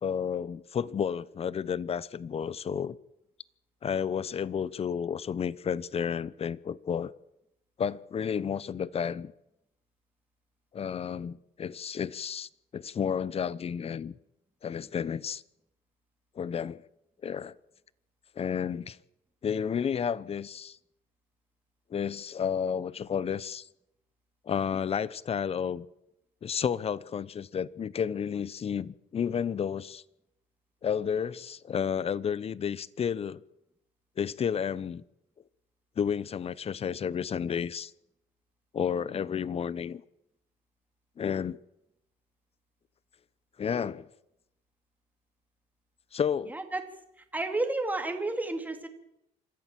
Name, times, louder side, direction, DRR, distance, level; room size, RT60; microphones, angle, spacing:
voice 1, 0.0-3.0 3.8-7.1 7.8-9.3 10.7-14.1 14.6-15.4 16.4-16.8 17.2-17.5 18.4-19.0 19.4-20.8 21.9-23.7 24.5-25.9 26.4-30.0 30.8-33.4 34.2-35.0 36.0-37.9 38.7-40.0 41.2-41.6 43.6-44.1 46.1-46.5, left 7 dB, 35° left, 0.8 m, -31 dB
voice 2, 46.5-46.8 47.3-48.9, right 2 dB, 10° right, 2.9 m, -31 dB
26.0 x 14.0 x 7.6 m
cardioid pair, 110°, 17 cm